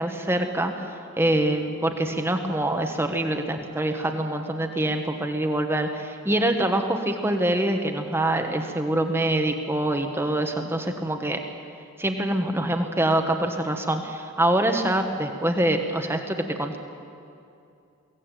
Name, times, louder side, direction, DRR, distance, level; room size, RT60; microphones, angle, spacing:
voice 1, 0.0-11.4 12.0-16.8, right 1 dB, 10° right, 5 dB, 1.3 m, -25 dB
22.5 x 17.0 x 9.1 m, 2.5 s
head